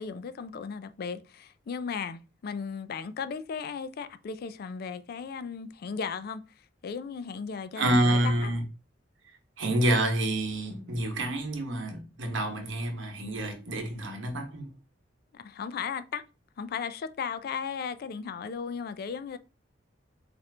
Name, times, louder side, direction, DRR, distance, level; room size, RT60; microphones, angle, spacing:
voice 1, 0.0-6.4 6.8-8.5 15.3-16.2 16.6-19.4, left 6 dB, 55° left, 0.3 m, -36 dB
voice 2, 7.8-8.6 9.6-14.7, right 1 dB, 80° right, 1.0 m, -28 dB
4.3 x 2.5 x 3.2 m
head